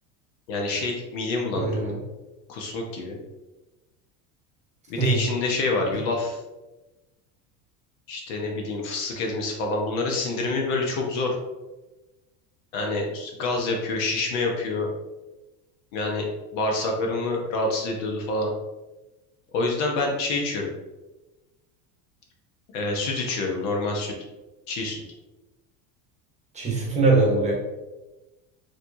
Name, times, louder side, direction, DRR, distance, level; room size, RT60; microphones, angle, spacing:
voice 1, 0.5-1.9 2.5-3.2 4.9-6.4 8.1-11.4 12.7-14.9 15.9-16.3 16.5-18.5 19.5-20.7 22.7-24.1 24.7-25.0, left 3 dB, 75° left, 1 dB, 1.1 m, -27 dB
voice 2, 1.5-2.0 5.0-5.2 26.5-27.5, right 3 dB, 15° right, -3 dB, 1.1 m, -22 dB
4.5 x 3.2 x 2.6 m, 1.1 s
cardioid pair, 140°, 39 cm